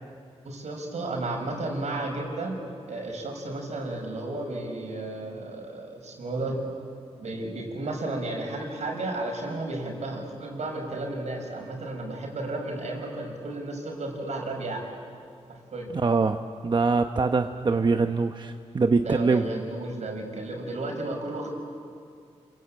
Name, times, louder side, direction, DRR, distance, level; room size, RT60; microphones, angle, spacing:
voice 1, 0.4-2.6 2.9-6.6 7.2-14.9 15.5-15.9 18.9-21.5, right 2 dB, 75° right, 2 dB, 6.1 m, -33 dB
voice 2, 15.9-16.4 16.6-19.4, right 4 dB, 40° right, 6 dB, 0.9 m, -23 dB
29.5 x 22.5 x 8.8 m, 2.3 s
cardioid pair, 85°, 12 cm